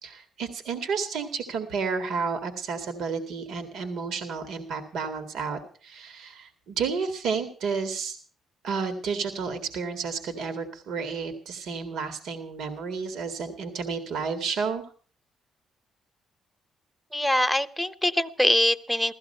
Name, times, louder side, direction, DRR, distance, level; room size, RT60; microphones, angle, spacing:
voice 1, 0.0-8.2 8.6-14.8, right 5 dB, 80° right, 8 dB, 2.0 m, -31 dB
voice 2, 17.1-19.1, left 1 dB, ahead, 8 dB, 1.0 m, -23 dB
16.0 x 14.5 x 5.5 m, 0.42 s
cardioid pair, 90°, 0 cm